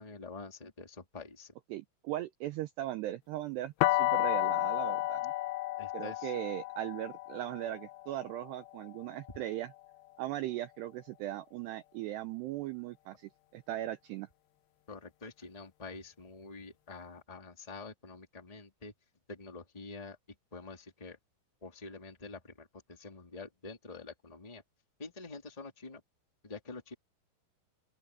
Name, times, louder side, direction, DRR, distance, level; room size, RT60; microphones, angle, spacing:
voice 1, 0.0-1.5 5.8-6.4 14.9-18.9 19.3-20.2 20.5-21.2 21.6-24.6 25.0-26.0 26.4-26.9, left 3 dB, 10° left, 2.2 m, -47 dB
voice 2, 1.7-5.3 5.9-9.7 10.2-14.3, right 14 dB, 90° right, 2.4 m, -38 dB
sound 1, 3.8-9.6, left 17 dB, 85° left, 2.5 m, -33 dB
open air
omnidirectional pair, 5.8 m